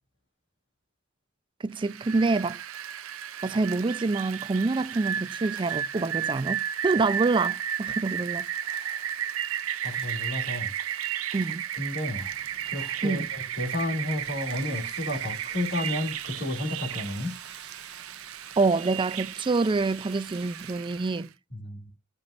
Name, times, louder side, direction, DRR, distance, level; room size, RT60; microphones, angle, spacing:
voice 1, 1.6-2.6 3.4-8.5 11.3-11.6 13.0-13.3 18.6-21.3, right 3 dB, 25° right, 0.4 m, -26 dB
Rain, 1.8-21.2, right 10 dB, 75° right, 0.6 m, -34 dB
sound 1, 4.6-5.3 5.6-5.9 8.6-9.1 9.8-10.2 11.3-11.6 12.2-13.0, left 2 dB, 20° left, 4.2 m, -54 dB
voice 2, 9.8-10.7 11.8-12.3 12.7-17.3 21.5-21.9, left 1 dB, 60° left, 2.6 m, -32 dB
sound 2, 12.1-20.7, right 8 dB, 55° right, 1.2 m, -49 dB
14.5 x 5.4 x 2.5 m
head